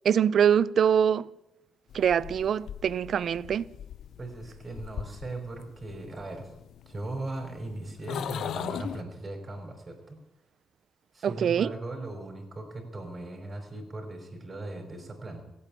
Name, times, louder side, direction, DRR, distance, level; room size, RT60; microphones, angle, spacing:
voice 1, 0.0-1.3 1.9-3.7 11.2-11.7, right 8 dB, 60° right, 0.5 m, -24 dB
sound 1, 1.9-9.0, left 9 dB, 70° left, 0.6 m, -40 dB
voice 2, 4.2-6.5 6.8-10.2 11.1-15.4, right 2 dB, 30° right, 4.9 m, -38 dB
16.0 x 8.8 x 9.9 m
cardioid pair, 90°, 0 cm